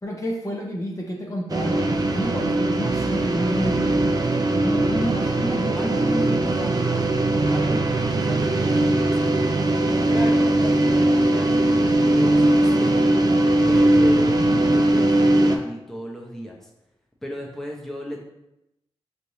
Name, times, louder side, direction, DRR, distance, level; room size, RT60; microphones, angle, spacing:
voice 1, 0.0-3.9 4.6-6.3, equal, 30° left, -1 dB, 0.8 m, -29 dB
sound 1, 1.5-15.6, right 1 dB, 35° right, 0.5 m, -20 dB
voice 2, 5.7-7.1 7.5-9.4 9.8-11.7 12.0-13.1 13.7-16.7 17.2-18.2, equal, 5° left, -2 dB, 0.9 m, -34 dB
4.3 x 3.3 x 2.7 m, 0.87 s
cardioid pair, 45°, 11 cm